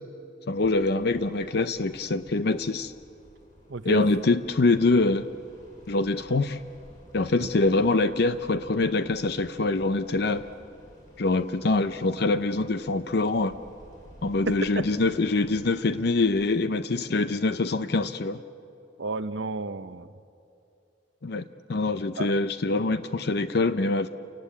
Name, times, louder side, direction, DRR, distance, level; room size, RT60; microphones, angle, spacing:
voice 1, 0.5-2.9 3.8-5.3 5.9-6.6 7.1-10.5 11.2-13.6 14.2-18.4 21.2-21.4 21.7-24.1, left 3 dB, 60° left, 11 dB, 0.6 m, -24 dB
sound 1, 0.6-16.6, equal, 45° left, 7.1 m, -53 dB
voice 2, 3.7-4.1 7.4-7.5 14.5-14.8 19.0-20.1 22.2-22.3, right 3 dB, 80° right, 12 dB, 0.8 m, -31 dB
29.0 x 19.0 x 8.4 m, 2.7 s
head